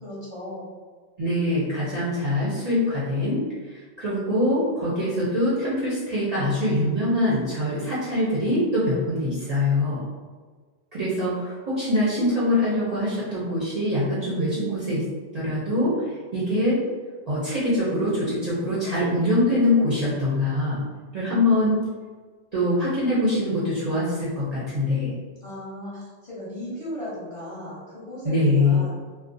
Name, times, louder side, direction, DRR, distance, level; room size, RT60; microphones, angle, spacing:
voice 1, 0.0-0.6 25.4-29.0, left 1 dB, 30° left, -9 dB, 0.8 m, -36 dB
voice 2, 1.2-3.4 3.7-10.0 10.9-15.0 15.3-15.9 16.3-16.8 17.3-20.8 21.1-21.8 22.5-25.1 28.2-28.8, left 1 dB, 45° right, -10 dB, 0.6 m, -23 dB
2.3 x 2.1 x 2.6 m, 1.5 s
omnidirectional pair, 1.2 m